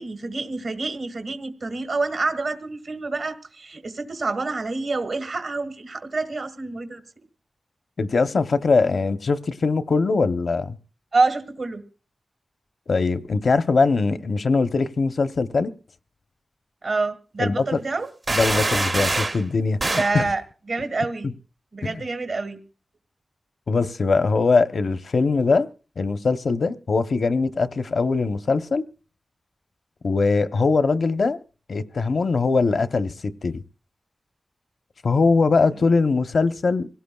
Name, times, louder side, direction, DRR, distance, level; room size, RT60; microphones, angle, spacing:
voice 1, 0.0-7.0 11.1-11.8 16.8-18.1 20.0-20.4 20.7-21.3 21.7-22.6, right 3 dB, 70° right, 1.7 m, -27 dB
voice 2, 8.0-10.8 12.9-15.7 17.4-17.8 18.3-20.2 21.2-21.3 21.8-22.0 23.7-25.7 26.0-28.8 30.0-31.4 31.7-33.6 35.0-36.9, left 4 dB, 70° left, 0.7 m, -21 dB
sound 1, 18.3-19.4 19.8-20.2, right 2 dB, 40° right, 0.6 m, -24 dB
26.0 x 17.0 x 2.3 m
wide cardioid pair, 100°, 0 cm